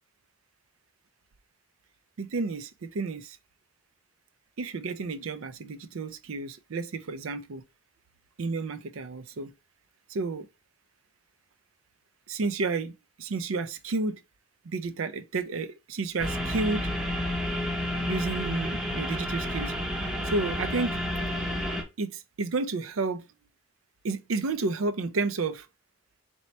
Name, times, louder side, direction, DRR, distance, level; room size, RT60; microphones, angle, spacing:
voice 1, 2.2-3.4 4.6-7.6 8.4-9.5 10.1-10.5 12.3-12.9 13.2-14.2 14.6-16.9 18.1-19.7 20.2-21.0 22.0-23.3 24.0-25.7, right 3 dB, 70° right, 0.5 m, -31 dB
sound 1, 16.2-21.8, equal, 5° right, 0.7 m, -30 dB
4.1 x 2.9 x 3.2 m
head